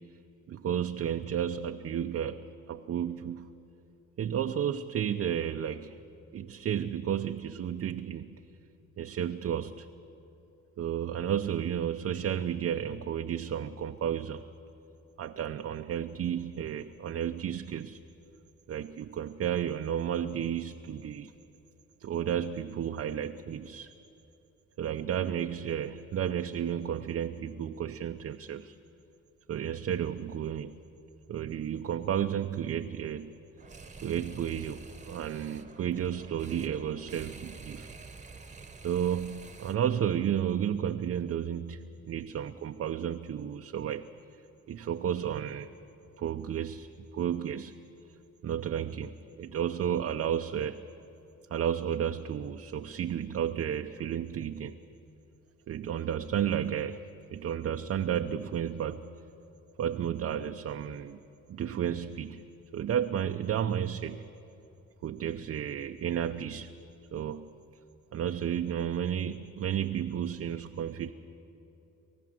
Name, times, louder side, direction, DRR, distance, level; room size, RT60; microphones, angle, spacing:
voice 1, 0.5-3.5 4.2-6.0 6.3-8.3 9.0-9.9 10.8-14.4 15.2-18.0 18.7-21.3 22.0-23.9 24.8-28.7 29.5-30.8 31.3-33.3 34.0-37.9 38.8-44.1 44.7-45.7 46.2-47.7 48.4-50.9 51.5-54.8 55.7-59.1 59.8-61.2 61.5-62.4 62.7-64.3 65.0-66.7 67.1-67.5 68.1-71.1, right 9 dB, 50° right, 6 dB, 0.7 m, -32 dB
sound 1, 33.6-40.0, right 4 dB, 25° right, 1.2 m, -48 dB
28.0 x 14.5 x 7.6 m, 2.9 s
cardioid pair, 90°, 30 cm